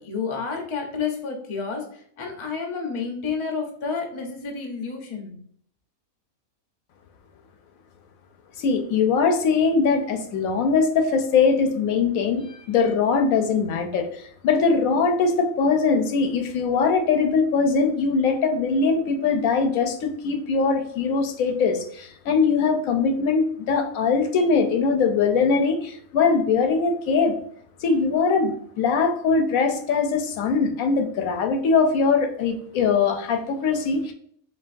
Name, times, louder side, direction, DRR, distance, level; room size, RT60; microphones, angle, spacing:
voice 1, 0.0-5.3, left 5 dB, 30° left, 2 dB, 0.6 m, -30 dB
voice 2, 8.6-27.3 27.8-34.1, left 5 dB, 80° left, 5 dB, 1.0 m, -21 dB
4.5 x 3.3 x 2.5 m, 0.62 s
omnidirectional pair, 1.5 m